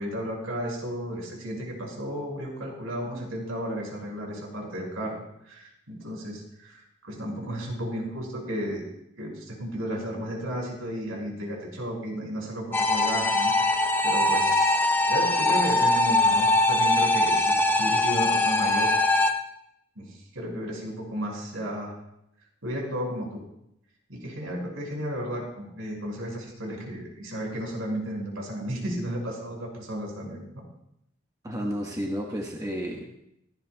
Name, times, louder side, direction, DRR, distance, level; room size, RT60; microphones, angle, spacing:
voice 1, 0.0-13.5 14.0-14.8 15.1-18.9 20.0-21.9 22.6-23.4 24.1-30.6, equal, 75° right, -1 dB, 5.7 m, -33 dB
sound 1, 12.7-19.3, left 2 dB, 10° left, 0.7 m, -22 dB
voice 2, 31.4-33.1, equal, 15° right, -1 dB, 1.4 m, -31 dB
17.5 x 15.5 x 2.3 m, 0.79 s
head